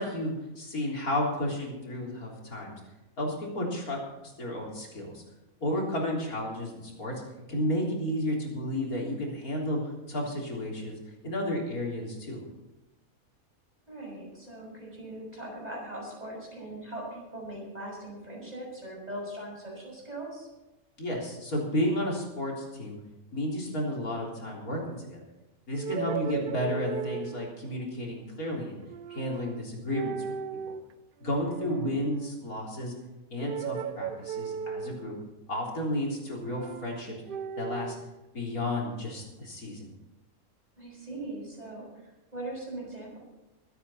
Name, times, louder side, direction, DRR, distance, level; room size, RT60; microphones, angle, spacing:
voice 1, 0.0-2.7 3.2-5.2 5.6-7.2 7.5-11.0 11.2-12.4 21.0-23.0 23.3-25.2 25.7-28.8 29.1-30.1 30.7-30.8 31.2-32.9 33.3-35.2 35.5-37.1 37.6-38.0 38.3-39.9, left 1 dB, 80° left, -2 dB, 4.1 m, -32 dB
voice 2, 13.9-20.5 31.6-32.0 40.8-43.2, right 1 dB, 25° right, -3 dB, 6.2 m, -40 dB
sound 1, 25.7-27.6 28.9-29.6 29.9-30.8 31.2-32.4 33.4-35.2 36.3-38.0, right 7 dB, 70° right, 0.5 m, -36 dB
23.0 x 9.5 x 4.3 m, 1.0 s
omnidirectional pair, 1.5 m